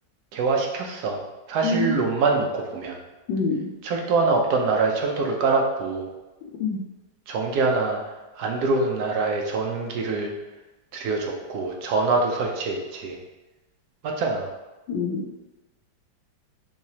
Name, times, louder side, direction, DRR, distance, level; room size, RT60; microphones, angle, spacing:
voice 1, 0.3-1.2 1.5-3.0 3.8-6.1 7.3-8.0 8.4-10.3 10.9-13.2 14.0-14.5, right 3 dB, 65° right, 1 dB, 1.1 m, -24 dB
voice 2, 3.3-3.7 6.6-6.8 14.9-15.2, left 4 dB, 85° left, -3 dB, 1.4 m, -25 dB
4.7 x 3.0 x 2.8 m, 1.1 s
omnidirectional pair, 2.0 m